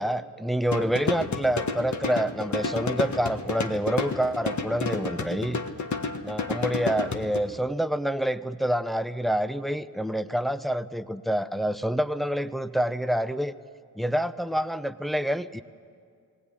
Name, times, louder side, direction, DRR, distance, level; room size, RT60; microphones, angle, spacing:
voice 1, 0.0-5.6 6.2-13.5 14.0-15.6, right 1 dB, ahead, 12 dB, 0.7 m, -27 dB
sound 1, 0.7-7.4, left 4 dB, 45° left, 1.5 m, -30 dB
19.5 x 17.0 x 9.9 m, 2.2 s
cardioid pair, 65°, 39 cm